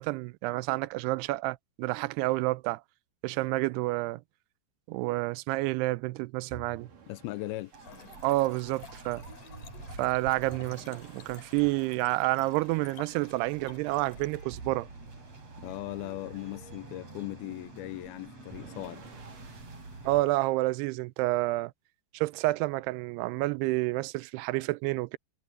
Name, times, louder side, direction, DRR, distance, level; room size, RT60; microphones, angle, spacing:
voice 1, 0.0-2.8 3.2-4.2 4.9-6.9 8.2-9.2 10.0-14.9 20.0-21.7 22.1-25.2, right 20 dB, 90° right, 2.7 m, -29 dB
sound 1, 6.5-7.9 10.5-12.0 14.5-15.9 18.5-20.1, right 4 dB, 55° right, 4.5 m, -51 dB
voice 2, 7.1-7.7 15.6-19.0, left 18 dB, 80° left, 2.5 m, -38 dB
sound 2, 7.7-20.2, right 2 dB, 40° right, 8.0 m, -48 dB
Trickle dribble / Fill (with liquid), 7.8-14.4, left 6 dB, 55° left, 4.5 m, -52 dB
omnidirectional pair, 4.6 m